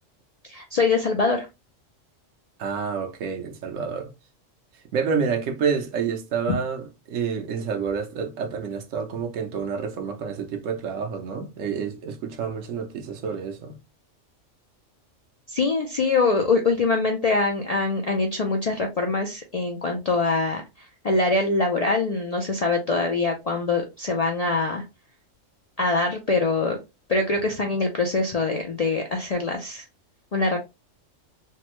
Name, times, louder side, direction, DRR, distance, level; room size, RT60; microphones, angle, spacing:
voice 1, 0.4-1.5 15.5-20.6 21.0-24.8 25.8-26.8 27.1-29.8 30.3-30.6, left 3 dB, 60° left, 0.4 m, -23 dB
voice 2, 2.6-4.1 4.9-13.8, right 6 dB, 90° right, 1.1 m, -28 dB
3.3 x 2.0 x 2.9 m
omnidirectional pair, 1.3 m